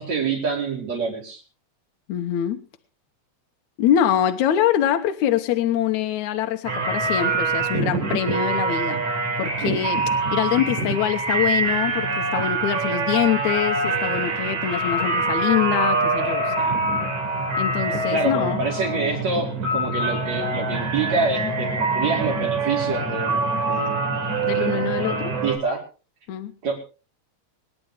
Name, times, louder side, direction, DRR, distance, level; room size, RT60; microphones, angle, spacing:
voice 1, 0.0-1.4 9.6-9.8 18.1-24.3 24.6-25.8 26.6-26.8, right 4 dB, 65° right, 0 dB, 5.8 m, -27 dB
voice 2, 2.1-2.6 3.8-9.0 9.4-10.1 10.3-16.8 17.6-18.6 24.4-25.4 26.3-26.5, left 10 dB, 80° left, 6 dB, 2.3 m, -24 dB
sound 1, 6.7-25.6, right 3 dB, 80° right, 5.2 m, -24 dB
26.0 x 10.5 x 3.4 m, 0.34 s
omnidirectional pair, 3.4 m